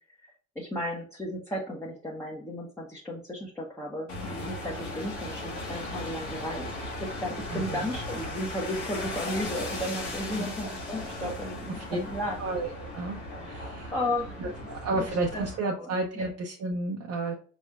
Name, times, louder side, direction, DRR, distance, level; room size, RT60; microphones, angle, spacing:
voice 1, 0.5-6.7 7.0-12.5 13.4-13.6 13.9-14.7 15.0-15.1 15.3-16.3, left 1 dB, 5° left, -4 dB, 1.1 m, -34 dB
sound 1, 4.1-15.6, left 1 dB, 70° left, 1.4 m, -37 dB
voice 2, 7.5-7.9 10.3-10.5 11.2-11.3 11.9-12.0 12.4-13.2 13.5-13.9 14.4-17.3, right 2 dB, 45° right, -1 dB, 0.8 m, -31 dB
5.3 x 3.1 x 2.4 m, 0.43 s
figure-of-eight pair, 55°, 36 cm